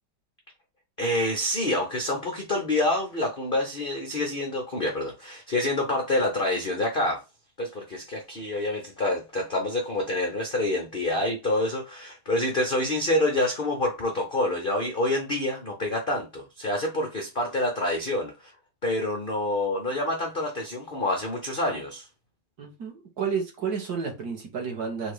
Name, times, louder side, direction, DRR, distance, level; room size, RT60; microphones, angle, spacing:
voice 1, 1.0-7.2 7.6-18.5 18.8-22.1, left 1 dB, 75° left, 0.4 m, -27 dB
voice 2, 22.6-25.1, right 6 dB, 50° right, 1.5 m, -31 dB
4.1 x 2.7 x 4.8 m
omnidirectional pair, 2.4 m